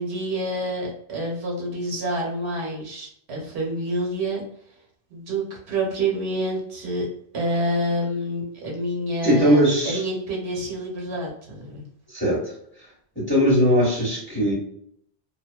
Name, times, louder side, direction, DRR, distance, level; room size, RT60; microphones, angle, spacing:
voice 1, 0.0-4.4 5.1-7.1 7.3-11.8, right 1 dB, 70° right, -2 dB, 1.0 m, -28 dB
voice 2, 9.2-10.0 12.1-12.5 13.1-14.5, equal, 10° left, -6 dB, 0.9 m, -20 dB
2.5 x 2.2 x 2.2 m, 0.67 s
omnidirectional pair, 1.1 m